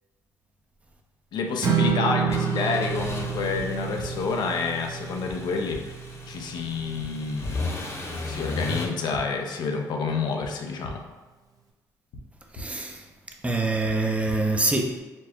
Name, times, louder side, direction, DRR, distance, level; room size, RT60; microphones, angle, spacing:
voice 1, 1.3-5.9 6.3-7.7 8.1-11.1, left 4 dB, 70° left, 0.6 m, -29 dB
Strum, 1.6-7.9, right 7 dB, 50° right, 0.7 m, -30 dB
sound 1, 2.3-2.4 3.5-3.6 4.0-4.1 5.3-5.4 5.7-5.8 7.0-7.1 7.4-7.5 8.7-8.8 9.1-9.2 10.4-10.5 10.8-10.9 12.1-12.2 12.5-12.6 13.8-13.9 14.3-14.4, left 1 dB, 85° left, 1.0 m, -38 dB
sound 2, 2.3-8.9, left 3 dB, 35° left, 0.9 m, -36 dB
voice 2, 12.6-12.9 13.4-15.0, right 2 dB, 15° right, 0.6 m, -25 dB
4.3 x 2.2 x 4.5 m
cardioid pair, 75°, 8 cm